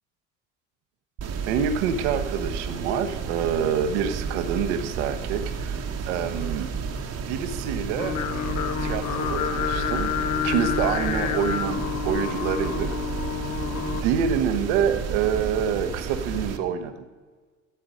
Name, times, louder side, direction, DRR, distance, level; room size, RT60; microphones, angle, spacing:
sound 1, 1.2-16.6, right 6 dB, 45° right, 1.1 m, -32 dB
voice 1, 1.5-6.7 7.3-8.2 8.8-10.1 10.4-13.0 13.9-17.1, right 7 dB, 75° right, 8 dB, 1.0 m, -26 dB
sound 2, 5.4-12.1, left 2 dB, 10° right, 1.3 m, -46 dB
Singing, 8.0-14.0, left 9 dB, 50° left, 0.8 m, -28 dB
12.0 x 7.8 x 4.9 m, 1.4 s
hypercardioid pair, 55°, 36 cm